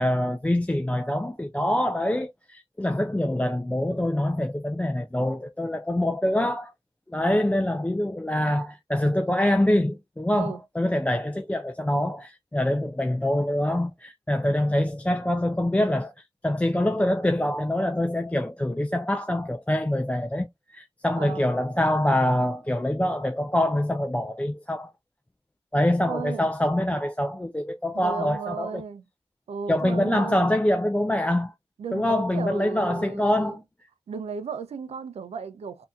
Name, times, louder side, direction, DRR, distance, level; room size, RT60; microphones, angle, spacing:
voice 1, 0.0-6.7 7.1-24.9 25.7-28.8 29.7-31.5 31.9-33.6, left 1 dB, 10° left, 0.5 m, -25 dB
voice 2, 21.2-21.5 26.0-26.5 27.9-29.0 29.5-30.4 31.8-33.6 34.1-35.9, right 6 dB, 75° right, 0.6 m, -35 dB
3.7 x 2.7 x 2.4 m
cardioid pair, 50°, 11 cm